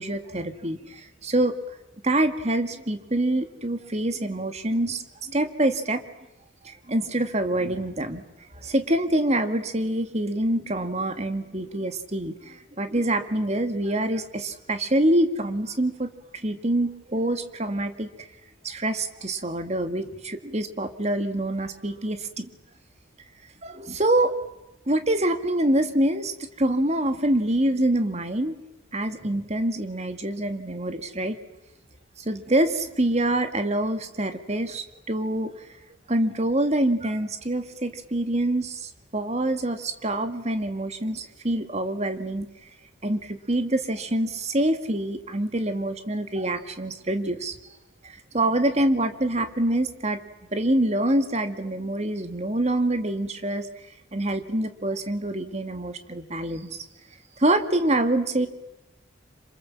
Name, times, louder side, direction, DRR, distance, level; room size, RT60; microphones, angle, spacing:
voice 1, 0.0-1.5 2.0-6.0 6.6-8.2 8.5-18.1 18.6-22.5 23.6-24.4 24.9-28.6 28.9-31.4 32.3-35.5 36.1-42.5 43.0-47.5 48.0-50.2 50.5-53.7 54.1-56.7 57.4-58.5, right 1 dB, 35° right, 8 dB, 2.0 m, -25 dB
27.5 x 26.5 x 7.6 m, 0.96 s
head